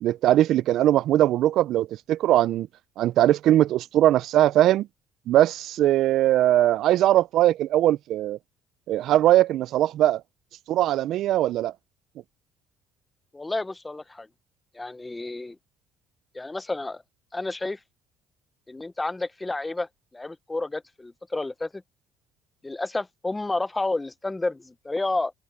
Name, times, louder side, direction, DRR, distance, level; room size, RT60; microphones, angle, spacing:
voice 1, 0.0-2.7 3.0-4.9 5.3-8.4 8.9-10.2 10.7-11.7, right 13 dB, 60° right, 0.4 m, -20 dB
voice 2, 13.3-14.3 14.7-15.6 16.3-17.0 17.3-17.8 18.7-19.9 20.1-21.8 22.6-25.3, left 2 dB, 10° left, 0.6 m, -30 dB
cardioid pair, 130°, 0 cm